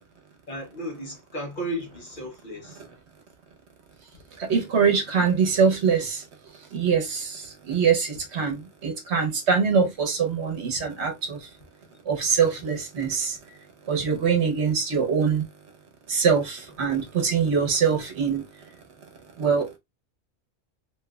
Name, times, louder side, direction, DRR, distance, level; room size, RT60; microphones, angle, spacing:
voice 1, 0.5-2.8 4.1-4.2 10.7-10.9 12.1-12.2 13.9-14.1, equal, 45° left, 1.1 m, -35 dB
voice 2, 4.4-6.2 6.7-11.5 12.1-13.4 13.9-15.4 16.1-18.5 19.4-19.8, right 6 dB, 70° right, 1.2 m, -23 dB
3.1 x 3.0 x 2.3 m
omnidirectional pair, 1.2 m